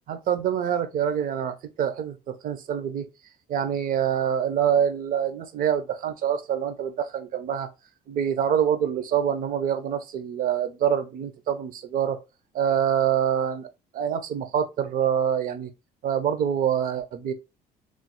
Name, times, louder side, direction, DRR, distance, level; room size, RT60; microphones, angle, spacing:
voice 1, 0.1-3.1 3.5-7.7 8.1-12.2 12.5-13.7 13.9-15.7 16.0-17.3, right 9 dB, 55° right, 0.5 m, -25 dB
3.1 x 2.0 x 2.9 m
cardioid pair, 110°, 17 cm